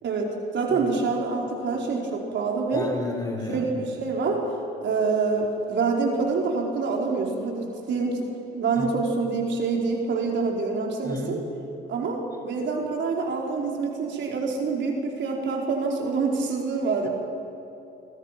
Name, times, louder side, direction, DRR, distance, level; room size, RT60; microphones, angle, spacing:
voice 1, 0.0-2.9 3.5-4.4 4.8-8.3 8.5-11.4 11.9-17.1, right 4 dB, 65° right, 0 dB, 4.6 m, -26 dB
voice 2, 2.7-3.7 8.8-9.0 11.0-11.4, left 2 dB, 20° left, 3 dB, 5.3 m, -32 dB
27.0 x 24.5 x 6.0 m, 2.9 s
cardioid pair, 90°, 20 cm